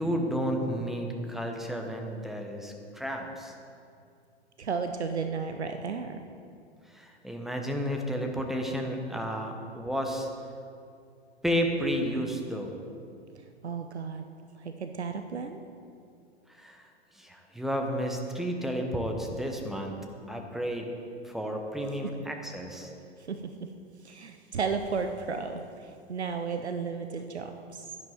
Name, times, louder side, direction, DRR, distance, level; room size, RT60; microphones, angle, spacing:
voice 1, 0.0-3.5 6.9-10.3 11.4-12.8 16.5-16.9 17.1-20.9 21.2-22.9, equal, ahead, 2 dB, 1.0 m, -32 dB
voice 2, 4.6-6.2 13.3-14.3 14.5-15.6 23.2-23.4 24.0-28.0, right 5 dB, 85° right, 7 dB, 0.7 m, -34 dB
11.0 x 10.5 x 4.3 m, 2.4 s
figure-of-eight pair, 105°, 32 cm